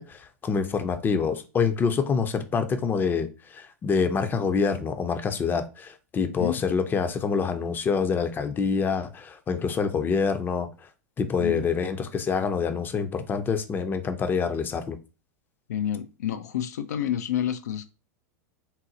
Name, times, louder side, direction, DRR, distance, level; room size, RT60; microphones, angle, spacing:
voice 1, 0.0-10.7 11.2-15.0, left 5 dB, 20° left, 0.5 m, -26 dB
voice 2, 15.7-17.9, left 10 dB, 80° left, 0.4 m, -29 dB
4.0 x 2.0 x 2.7 m
hypercardioid pair, 100°, 9 cm